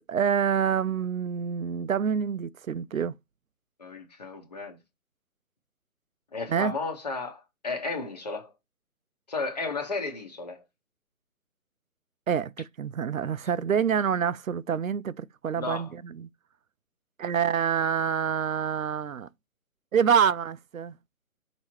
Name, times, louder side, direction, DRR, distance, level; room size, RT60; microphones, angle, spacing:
voice 1, 0.0-3.2 6.5-6.7 12.3-16.3 17.2-19.3 19.9-21.0, right 7 dB, 70° right, 0.5 m, -27 dB
voice 2, 3.8-4.8 6.3-8.5 9.3-10.6 15.5-15.9, left 3 dB, 30° left, 1.0 m, -33 dB
5.7 x 3.0 x 3.0 m
figure-of-eight pair, 145°, 43 cm